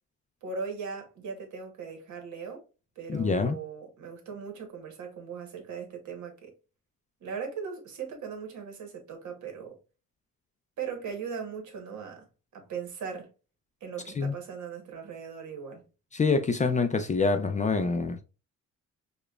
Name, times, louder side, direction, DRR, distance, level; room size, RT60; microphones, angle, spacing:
voice 1, 0.4-2.6 3.0-6.5 7.2-9.8 10.8-12.2 12.5-13.3 13.8-15.8, right 6 dB, 70° right, 1.2 m, -39 dB
voice 2, 3.1-3.6 14.2-14.3 16.1-18.2, left 4 dB, 25° left, 0.3 m, -26 dB
4.8 x 2.2 x 2.3 m
cardioid pair, 105°, 31 cm